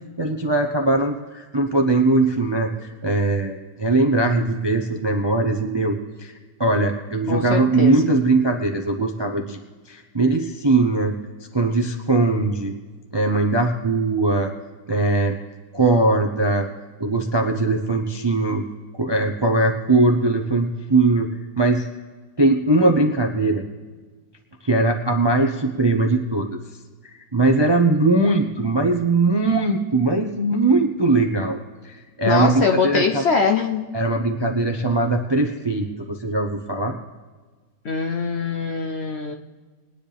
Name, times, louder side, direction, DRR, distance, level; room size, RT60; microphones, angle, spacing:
voice 1, 0.2-6.3 6.6-9.6 9.9-11.2 11.5-12.7 13.1-14.5 14.9-15.4 15.7-16.7 17.0-18.6 18.9-21.3 21.6-21.9 22.4-23.6 24.6-26.6 27.3-33.2 33.9-36.9, right 2 dB, 25° right, 3 dB, 0.5 m, -20 dB
voice 2, 7.3-7.9 32.3-33.9 37.8-39.3, left 5 dB, 55° left, 4 dB, 0.8 m, -22 dB
22.0 x 10.0 x 3.4 m, 1.4 s
omnidirectional pair, 1.8 m